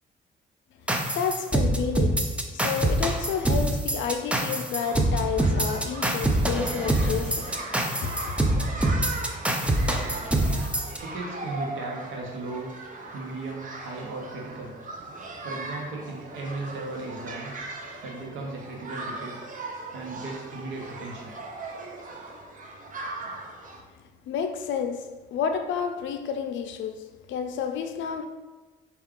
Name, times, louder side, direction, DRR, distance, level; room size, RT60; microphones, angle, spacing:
voice 1, 0.8-8.4 24.0-28.3, left 7 dB, 70° left, 0.4 m, -31 dB
sound 1, 0.9-11.0, right 1 dB, 5° right, 0.4 m, -25 dB
sound 2, 4.8-23.8, right 2 dB, 40° right, 0.6 m, -39 dB
voice 2, 9.6-10.3 11.0-12.7 13.1-14.7 15.4-17.5 18.0-19.4 19.9-21.3, right 2 dB, 80° right, 0.8 m, -36 dB
4.5 x 2.3 x 3.6 m
cardioid pair, 90°, 20 cm